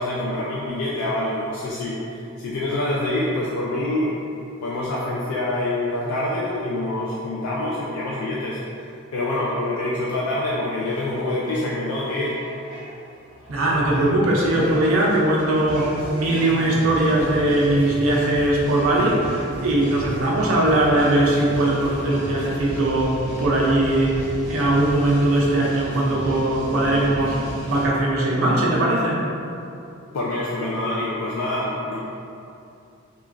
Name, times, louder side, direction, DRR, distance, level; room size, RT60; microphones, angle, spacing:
voice 1, 0.0-4.2 4.6-8.6 9.1-12.3 30.1-32.0, left 1 dB, 85° left, -6 dB, 0.3 m, -26 dB
sound 1, 10.8-27.8, equal, 25° left, 1.1 m, -34 dB
voice 2, 13.5-24.2 24.5-29.2, right 1 dB, 75° right, -3 dB, 0.4 m, -20 dB
3.0 x 2.3 x 2.4 m, 2.6 s
head